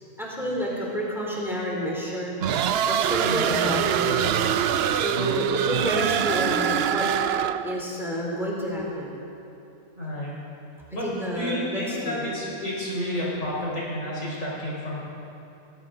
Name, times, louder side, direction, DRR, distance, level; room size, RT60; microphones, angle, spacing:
voice 1, 0.2-2.3 2.9-4.3 4.9-7.1 7.6-9.2 10.9-12.3, equal, ahead, -4 dB, 3.4 m, -29 dB
Demonic Roar, 2.4-7.8, right 9 dB, 75° right, 0.5 m, -24 dB
voice 2, 3.2-3.6 10.0-10.3 10.9-15.0, equal, 55° left, -6 dB, 5.5 m, -31 dB
20.0 x 16.5 x 4.0 m, 2.9 s
omnidirectional pair, 1.6 m